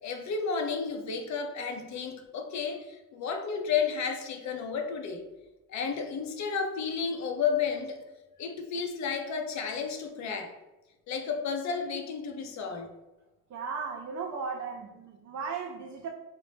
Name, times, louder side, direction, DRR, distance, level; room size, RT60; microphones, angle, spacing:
voice 1, 0.0-5.2 5.7-8.0 8.4-10.5 11.1-12.9, left 6 dB, 65° left, 4 dB, 0.6 m, -32 dB
voice 2, 13.5-16.1, right 5 dB, 65° right, 0 dB, 0.5 m, -36 dB
3.9 x 2.0 x 3.3 m, 1.1 s
cardioid pair, 90°, 30 cm